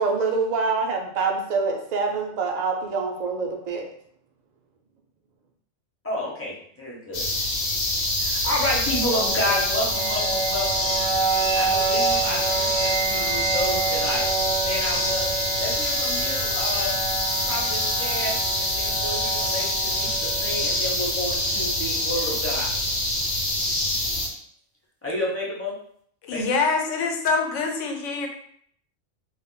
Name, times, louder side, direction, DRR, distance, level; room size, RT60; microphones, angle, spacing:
voice 1, 0.0-3.9, right 4 dB, 60° right, 2 dB, 0.4 m, -25 dB
voice 2, 6.0-7.2 8.2-11.0 11.5-15.3 15.6-17.0 17.4-22.7 25.0-25.7 26.3-26.4, left 1 dB, 15° left, -5 dB, 0.5 m, -30 dB
sound 1, 7.1-24.3, left 1 dB, 60° left, 0.9 m, -26 dB
sound 2, 8.8-22.8, right 5 dB, 80° right, 0.9 m, -29 dB
voice 3, 26.2-28.3, left 4 dB, 90° left, 3 dB, 0.9 m, -25 dB
2.4 x 2.0 x 3.7 m, 0.64 s
omnidirectional pair, 1.2 m